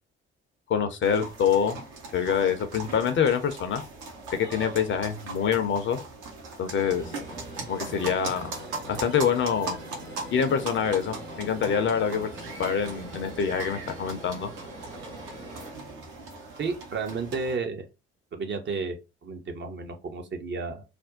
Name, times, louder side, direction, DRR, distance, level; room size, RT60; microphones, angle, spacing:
voice 1, 0.7-1.8 2.1-3.8 4.3-6.0 6.6-7.0 7.7-8.5 8.9-9.8 10.3-12.3 12.6-14.5, left 7 dB, 35° left, 0.6 m, -25 dB
sound 1, 1.0-17.6, right 3 dB, 60° right, 0.9 m, -40 dB
sound 2, 6.8-15.7, right 1 dB, 75° right, 1.2 m, -43 dB
voice 2, 16.6-17.9 18.3-19.0 19.2-20.8, right 4 dB, 35° right, 0.7 m, -32 dB
2.5 x 2.2 x 3.5 m
figure-of-eight pair, 45°, 33 cm